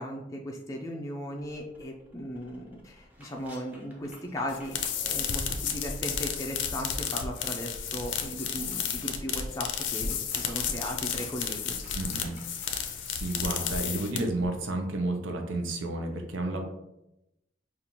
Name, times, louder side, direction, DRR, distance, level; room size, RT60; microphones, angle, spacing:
voice 1, 0.0-11.8 12.8-12.9 16.5-16.6, equal, 15° left, -1 dB, 0.4 m, -37 dB
sound 1, 1.4-6.8 7.1-13.3, equal, 10° right, 0.7 m, -51 dB
sound 2, 4.5-14.5, left 7 dB, 70° left, 0.5 m, -32 dB
voice 2, 11.9-12.4 12.7-16.6, right 2 dB, 80° right, 4 dB, 0.6 m, -32 dB
5.3 x 2.4 x 2.9 m, 0.89 s
head